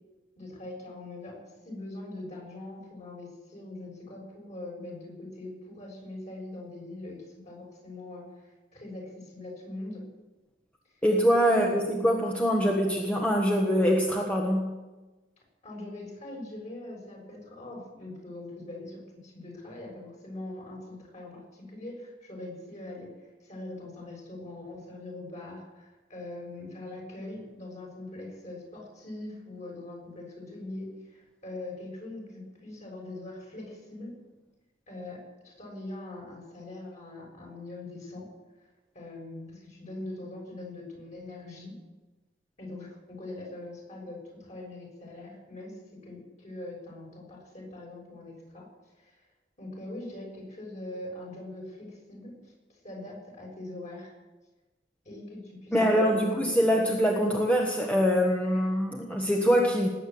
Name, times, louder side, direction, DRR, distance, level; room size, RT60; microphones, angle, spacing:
voice 1, 0.3-1.4 1.6-10.0 11.5-11.8 15.6-23.1 23.4-34.1 34.9-38.3 38.9-41.7 42.6-48.7 49.0-49.2 49.6-52.5 52.8-54.1 55.0-56.5, left 2 dB, 40° left, -1 dB, 6.6 m, -42 dB
voice 2, 11.0-14.7 55.7-59.9, equal, 10° left, -1 dB, 1.4 m, -24 dB
19.5 x 9.0 x 7.8 m, 1.2 s
head